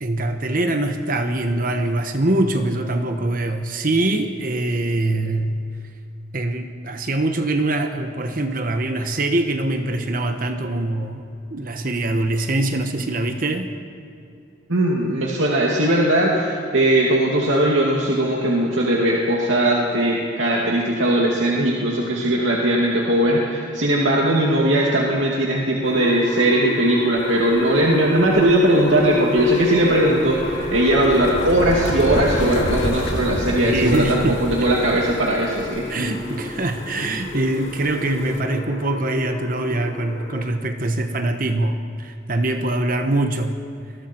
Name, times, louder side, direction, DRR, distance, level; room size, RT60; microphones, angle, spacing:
voice 1, 0.0-5.6 6.3-11.2 11.5-13.7 33.6-34.7 35.9-43.6, right 2 dB, 45° right, 6 dB, 1.2 m, -23 dB
voice 2, 14.7-35.9, right 1 dB, 85° right, -3 dB, 2.5 m, -19 dB
sound 1, 25.8-40.5, left 1 dB, 35° left, 3.4 m, -30 dB
sound 2, 27.2-38.4, left 1 dB, 85° left, 2.3 m, -31 dB
29.0 x 22.0 x 4.6 m, 2.4 s
head